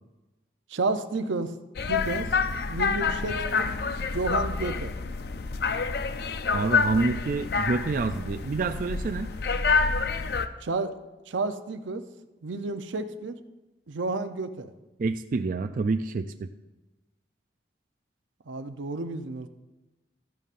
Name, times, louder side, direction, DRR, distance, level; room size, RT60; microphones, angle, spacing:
voice 1, 0.7-1.5 1.9-2.3 2.7-4.9 10.6-11.0 11.3-12.0 12.4-13.4 13.9-14.7 18.5-19.5, right 3 dB, 85° right, 9 dB, 0.6 m, -31 dB
sound 1, 1.8-10.5, left 4 dB, 55° left, 0.4 m, -27 dB
voice 2, 6.5-9.3 15.0-16.5, right 3 dB, 45° right, 8 dB, 0.3 m, -27 dB
13.5 x 11.0 x 2.5 m, 1.1 s
head